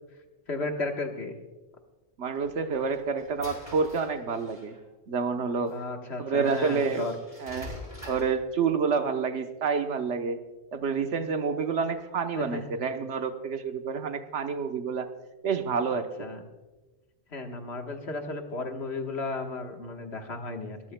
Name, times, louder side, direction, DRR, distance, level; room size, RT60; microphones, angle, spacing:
voice 1, 0.5-1.3 5.3-7.1 12.4-12.6 15.9-16.4 17.3-20.8, left 3 dB, 70° left, 4 dB, 1.6 m, -34 dB
voice 2, 2.2-4.7 5.1-5.7 6.2-7.1 7.4-7.7 8.1-10.4 10.7-15.1 15.4-16.3, right 5 dB, 85° right, 7 dB, 1.3 m, -28 dB
sound 1, 2.4-4.8 5.7-5.8 6.4-8.4, left 1 dB, 40° left, 5.4 m, -45 dB
23.5 x 14.0 x 2.2 m, 1.1 s
omnidirectional pair, 1.1 m